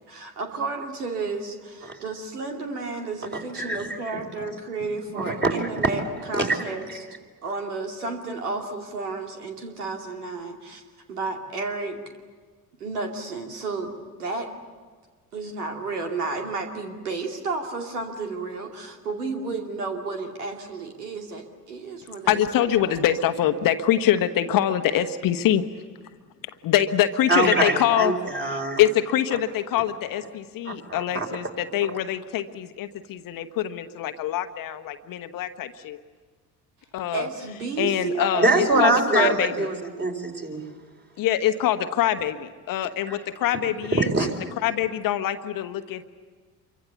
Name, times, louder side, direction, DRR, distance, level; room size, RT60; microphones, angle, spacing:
voice 1, 0.1-6.0 6.3-7.1 7.4-10.8 11.1-12.0 12.8-13.9 14.2-14.5 15.3-23.0 37.1-39.4, right 3 dB, 75° right, 3 dB, 2.6 m, -32 dB
voice 2, 3.3-4.0 5.1-5.9 6.3-6.6 27.3-28.8 30.6-31.5 38.4-40.7 43.1-43.2 43.9-44.5, right 2 dB, 25° right, 3 dB, 4.5 m, -24 dB
voice 3, 22.3-25.6 26.6-28.1 28.5-36.0 36.9-37.3 37.8-38.5 38.8-39.7 41.2-44.3 44.6-46.0, left 11 dB, 45° left, 9 dB, 1.3 m, -24 dB
27.5 x 24.0 x 7.2 m, 1.5 s
figure-of-eight pair, 55°, 46 cm